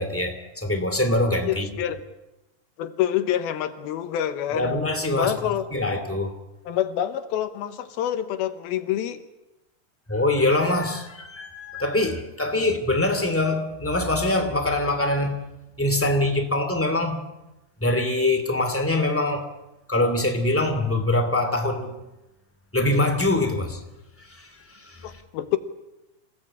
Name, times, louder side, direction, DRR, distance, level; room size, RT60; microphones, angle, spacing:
voice 1, 0.0-1.7 4.5-6.3 10.1-15.4 15.8-17.3 17.8-19.5 19.9-22.0 22.7-23.8 24.2-25.2, left 2 dB, 5° left, 1.8 m, -24 dB
voice 2, 1.4-2.0 2.8-4.8 5.2-5.6 6.7-9.2 25.0-25.6, left 11 dB, 80° left, 2.9 m, -27 dB
27.0 x 18.0 x 8.6 m
omnidirectional pair, 4.3 m